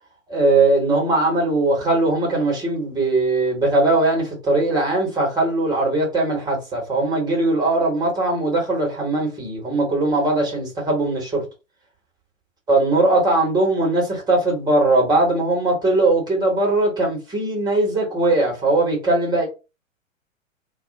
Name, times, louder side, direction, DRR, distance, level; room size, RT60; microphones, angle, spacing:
voice 1, 0.3-11.4 12.7-19.5, right 2 dB, 10° right, 1.2 m, -20 dB
2.4 x 2.3 x 4.0 m
figure-of-eight pair, 110°, 40 cm